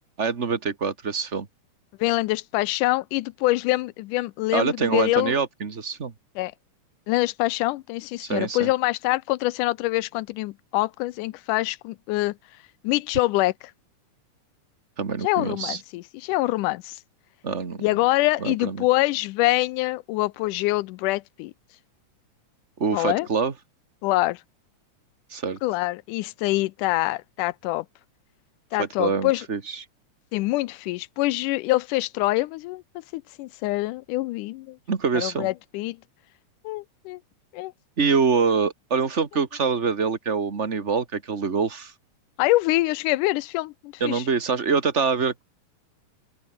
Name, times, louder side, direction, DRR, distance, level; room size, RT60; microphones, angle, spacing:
voice 1, 0.2-1.5 4.5-6.1 8.2-8.7 15.0-15.8 17.4-17.8 18.4-18.8 22.8-23.5 25.3-25.6 28.8-29.8 34.9-35.5 38.0-41.9 44.0-45.4, right 5 dB, 30° right, 1.4 m, -25 dB
voice 2, 2.0-5.3 6.4-6.5 7.1-12.4 12.8-13.5 15.2-17.0 17.8-21.5 22.9-23.3 24.0-24.4 25.6-27.9 28.7-29.5 30.3-32.8 33.1-34.8 35.1-36.0 36.6-37.2 37.5-37.7 42.4-44.2, left 19 dB, 85° left, 2.2 m, -25 dB
open air
omnidirectional pair, 3.6 m